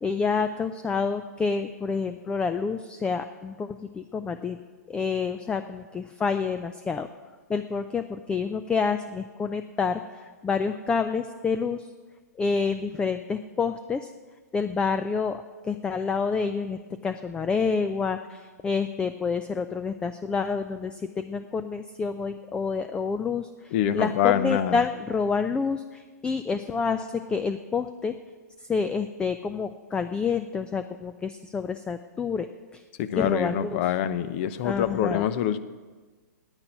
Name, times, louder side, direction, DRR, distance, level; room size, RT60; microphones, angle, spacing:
voice 1, 0.0-4.6 4.9-7.1 7.5-11.9 12.4-14.1 14.5-28.2 28.6-32.5 32.7-32.8 33.2-33.8 34.6-35.3, left 5 dB, 10° left, 0.4 m, -28 dB
voice 2, 23.7-24.8 33.0-35.6, left 10 dB, 40° left, 0.7 m, -25 dB
9.8 x 9.0 x 9.9 m
figure-of-eight pair, 120°, 9 cm